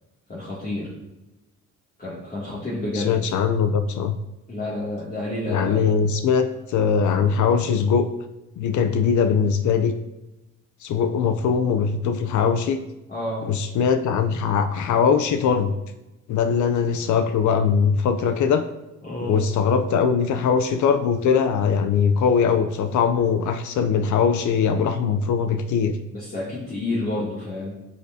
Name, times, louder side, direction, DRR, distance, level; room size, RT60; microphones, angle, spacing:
voice 1, 0.3-0.9 2.0-3.2 4.5-5.9 13.1-13.4 19.0-19.4 26.1-27.8, left 1 dB, 30° left, -8 dB, 2.5 m, -29 dB
voice 2, 2.9-4.2 5.5-8.1 8.6-9.9 10.8-12.8 13.4-15.7 16.3-18.6 19.2-26.0, left 6 dB, 75° left, 9 dB, 0.6 m, -21 dB
9.8 x 6.8 x 2.7 m, 0.98 s
cardioid pair, 90°, 30 cm